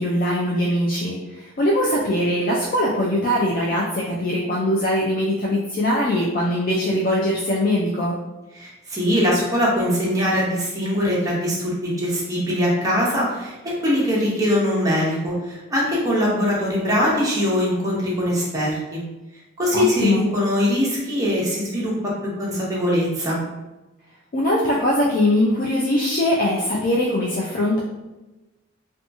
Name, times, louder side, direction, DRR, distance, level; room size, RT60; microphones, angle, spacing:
voice 1, 0.0-8.1 19.7-20.2 24.3-27.8, left 1 dB, 45° left, -4 dB, 0.3 m, -21 dB
voice 2, 8.5-19.0 19.6-23.4, equal, 15° right, -5 dB, 0.7 m, -22 dB
2.8 x 2.2 x 2.5 m, 1.1 s
head